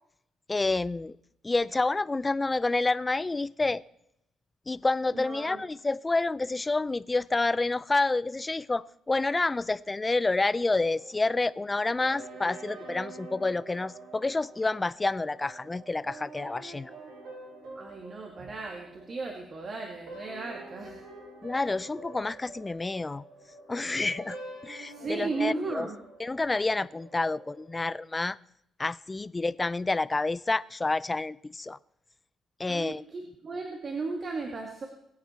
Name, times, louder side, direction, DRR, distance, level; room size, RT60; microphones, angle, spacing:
voice 1, 0.5-1.2 1.4-3.8 4.7-16.9 21.4-23.2 23.7-24.4 24.6-25.9 26.2-28.4 28.8-31.8 32.6-33.0, left 3 dB, 20° left, 0.4 m, -28 dB
voice 2, 5.1-5.6 17.8-21.0 24.9-26.0 32.7-34.9, right 3 dB, 45° right, 2.0 m, -35 dB
sound 1, 10.4-27.8, right 2 dB, 85° right, 6.4 m, -47 dB
21.0 x 8.5 x 4.4 m
cardioid pair, 90°, 0 cm